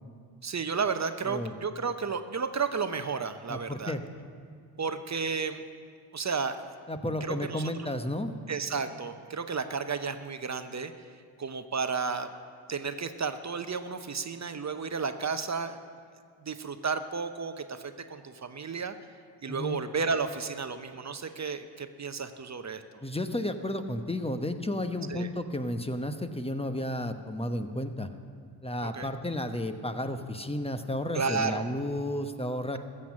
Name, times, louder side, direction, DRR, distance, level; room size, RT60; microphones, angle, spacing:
voice 1, 0.4-4.0 4.8-5.6 6.1-6.6 7.2-7.9 8.5-10.9 11.4-12.3 12.7-15.8 16.4-19.0 19.4-23.0 25.1-25.3 28.8-29.1 31.1-31.7, right 5 dB, 35° right, 9 dB, 0.9 m, -32 dB
voice 2, 3.5-4.0 6.9-8.3 19.5-19.8 23.0-28.1 28.6-32.8, left 1 dB, 10° left, 8 dB, 1.1 m, -32 dB
14.5 x 7.4 x 7.4 m, 2.2 s
hypercardioid pair, 40°, 49 cm